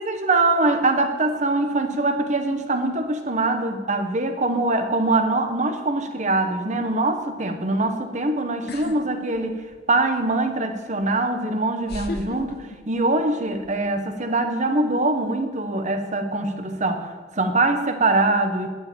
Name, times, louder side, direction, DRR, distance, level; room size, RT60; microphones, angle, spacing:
voice 1, 0.0-9.6 9.9-18.7, right 2 dB, 40° right, 6 dB, 1.0 m, -23 dB
sound 1, 8.7-9.0 9.3-10.0 11.0-11.1 11.9-13.2 13.5-14.0, left 2 dB, 60° left, 1.0 m, -35 dB
11.5 x 5.1 x 8.4 m, 1.5 s
head